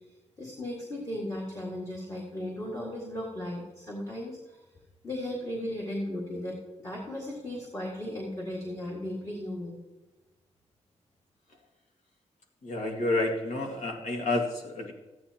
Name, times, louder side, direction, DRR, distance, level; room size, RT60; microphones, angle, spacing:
voice 1, 0.4-4.6 5.0-9.8, left 1 dB, 25° left, -3 dB, 1.9 m, -36 dB
voice 2, 12.6-14.9, left 2 dB, 80° left, 1 dB, 2.1 m, -29 dB
14.0 x 9.8 x 2.9 m, 1.1 s
wide cardioid pair, 140°, 12 cm